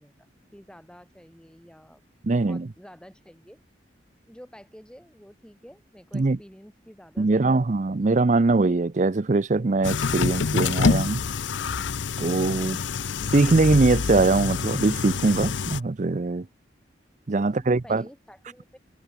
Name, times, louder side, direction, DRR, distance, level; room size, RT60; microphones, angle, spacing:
voice 1, 0.0-2.0 2.3-3.6 4.3-7.8 17.3-18.8, equal, 5° left, 7.6 m, -50 dB
voice 2, 2.2-2.7 6.1-6.4 7.2-11.2 12.2-12.8 13.3-16.5 17.3-18.0, right 3 dB, 40° right, 0.5 m, -22 dB
sound 1, 9.8-15.8, left 5 dB, 85° left, 0.6 m, -26 dB
head